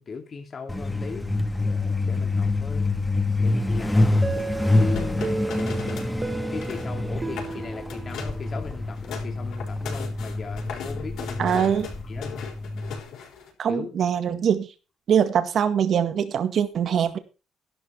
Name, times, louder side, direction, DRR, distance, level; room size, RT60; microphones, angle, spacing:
voice 1, 0.0-1.4 2.1-2.9 3.4-4.2 4.8-5.5 6.5-11.4 12.1-12.5 13.7-13.9, left 5 dB, 45° left, 3 dB, 2.6 m, -37 dB
Truck, 0.7-13.0, left 2 dB, 10° left, 1.7 m, -26 dB
sound 1, 4.2-8.9, right 3 dB, 25° right, 1.4 m, -34 dB
sound 2, 4.3-6.2 6.4-6.9 7.3-7.6 7.9-8.4 8.8-13.5, left 6 dB, 80° left, 5.5 m, -38 dB
voice 2, 11.4-11.9 13.6-14.7 15.1-17.2, right 8 dB, 60° right, 9 dB, 1.8 m, -23 dB
12.0 x 11.5 x 4.5 m, 0.32 s
cardioid pair, 90°, 0 cm